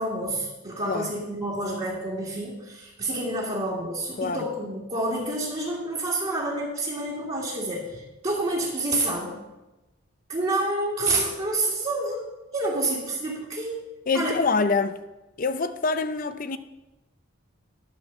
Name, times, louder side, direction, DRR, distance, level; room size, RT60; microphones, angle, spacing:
voice 1, 0.0-9.4 10.3-12.3 12.5-13.8 14.1-14.4, right 2 dB, 30° right, 1.8 m, -28 dB
voice 2, 14.1-15.0 15.4-16.6, left 4 dB, 40° left, 0.5 m, -25 dB
11.5 x 4.6 x 6.7 m
head